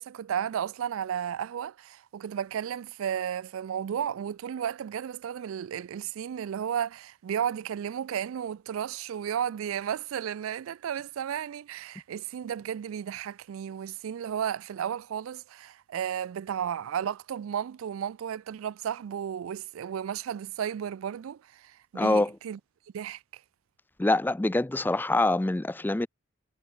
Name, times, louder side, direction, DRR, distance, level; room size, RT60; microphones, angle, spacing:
voice 1, 0.0-22.6 22.9-23.4, right 9 dB, 80° right, 0.3 m, -33 dB
voice 2, 22.0-22.3 24.0-26.1, left 2 dB, 10° left, 0.3 m, -25 dB
head